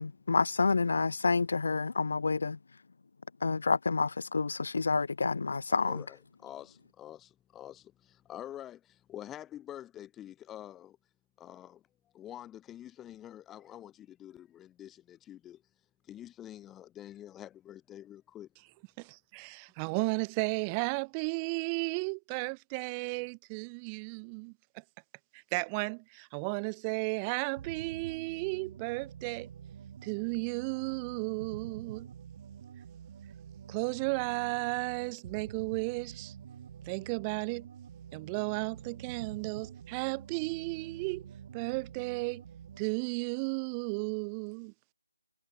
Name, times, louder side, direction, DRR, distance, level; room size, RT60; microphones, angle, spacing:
voice 1, 0.0-2.6 3.4-6.0, left 4 dB, 55° left, 0.3 m, -28 dB
voice 2, 5.7-11.0 11.4-11.8 12.1-15.6 16.0-18.5, left 11 dB, 10° left, 1.1 m, -47 dB
voice 3, 19.3-24.5 25.3-29.5 30.0-32.1 33.7-36.3 36.8-37.7 38.1-42.4 42.8-44.7, right 35 dB, 15° right, 0.4 m, -34 dB
sound 1, 27.6-42.9, right 8 dB, 30° right, 2.1 m, -48 dB
figure-of-eight pair, 165°, 0 cm